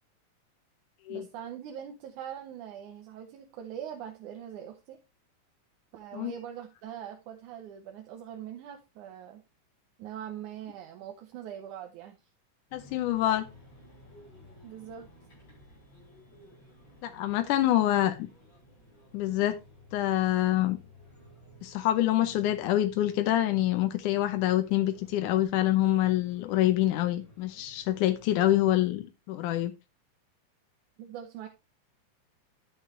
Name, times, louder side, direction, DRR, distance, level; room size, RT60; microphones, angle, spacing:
voice 1, 1.1-5.0 5.9-9.4 10.0-12.2 14.6-15.1 31.0-31.5, right 9 dB, 80° right, 2.4 m, -42 dB
voice 2, 12.7-13.5 17.0-18.3 19.1-19.6 19.9-20.8 21.6-29.7, left 14 dB, 90° left, 2.3 m, -26 dB
sound 1, 12.7-28.7, equal, 35° left, 7.3 m, -55 dB
11.0 x 7.0 x 3.1 m
omnidirectional pair, 3.5 m